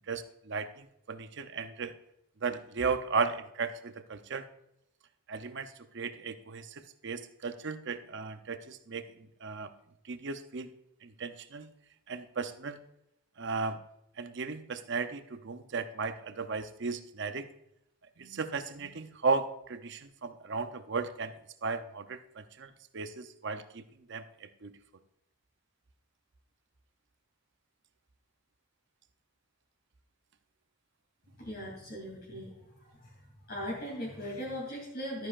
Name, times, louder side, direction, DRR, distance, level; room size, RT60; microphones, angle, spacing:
voice 1, 0.1-1.9 2.4-4.4 5.3-9.0 9.4-9.7 10.1-10.7 11.0-11.7 12.1-12.8 13.4-13.8 14.2-17.5 18.2-21.3 21.6-23.8 24.1-24.7, right 4 dB, 55° right, 9 dB, 0.7 m, -35 dB
voice 2, 31.4-32.6 33.5-35.3, equal, 45° left, -5 dB, 3.1 m, -38 dB
12.5 x 9.8 x 2.5 m, 0.80 s
head